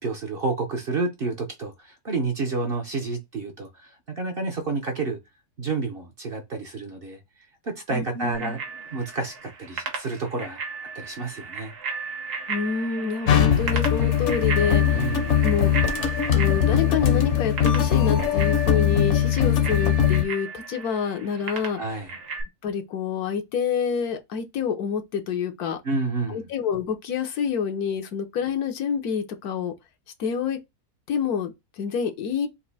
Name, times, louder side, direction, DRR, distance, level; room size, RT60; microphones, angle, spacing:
voice 1, 0.0-5.2 5.6-7.2 7.6-8.6 8.9-10.6 10.9-11.7 14.9-15.5 21.8-22.1 25.8-26.4, right 3 dB, 50° right, 0.8 m, -29 dB
voice 2, 7.9-8.6 12.5-15.1 15.4-15.7 16.3-21.8 22.6-25.8 26.3-29.7 30.2-30.6 31.1-32.5, left 6 dB, 75° left, 1.3 m, -27 dB
Bicycle bell, 8.3-22.4, right 4 dB, 85° right, 1.7 m, -35 dB
sound 1, 13.3-20.2, left 9 dB, 55° left, 1.0 m, -21 dB
4.2 x 2.6 x 4.0 m
omnidirectional pair, 1.6 m